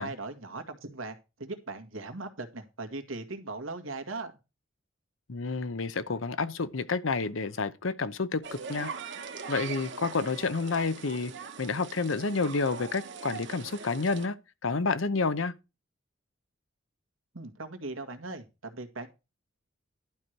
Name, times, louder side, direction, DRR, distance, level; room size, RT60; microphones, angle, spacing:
voice 1, 0.0-4.3 17.3-19.1, right 3 dB, 90° right, 1.8 m, -39 dB
voice 2, 5.3-8.4 8.7-8.9 9.5-11.3 11.6-14.3 14.6-15.5, left 4 dB, 80° left, 0.8 m, -29 dB
sound 1, 8.4-14.3, right 5 dB, 60° right, 1.4 m, -41 dB
12.0 x 4.6 x 6.5 m
head